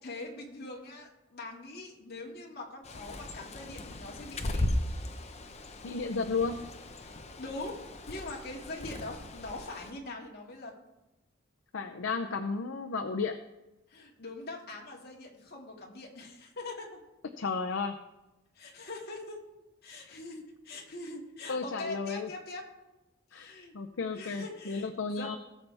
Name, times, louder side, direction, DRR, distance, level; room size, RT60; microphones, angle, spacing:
voice 1, 0.0-4.7 7.0-7.8 8.1-10.7 13.9-17.0 18.6-19.4 19.8-22.6 23.3-23.7 24.1-25.3, left 2 dB, 55° left, -1 dB, 2.2 m, -43 dB
Bird, 2.8-9.9, left 1 dB, 35° left, 0.8 m, -37 dB
voice 2, 5.8-6.6 11.7-13.4 17.4-17.9 20.0-20.2 21.5-22.3 23.3-25.4, left 4 dB, 70° left, 6 dB, 0.6 m, -33 dB
17.5 x 6.9 x 3.4 m, 1.0 s
head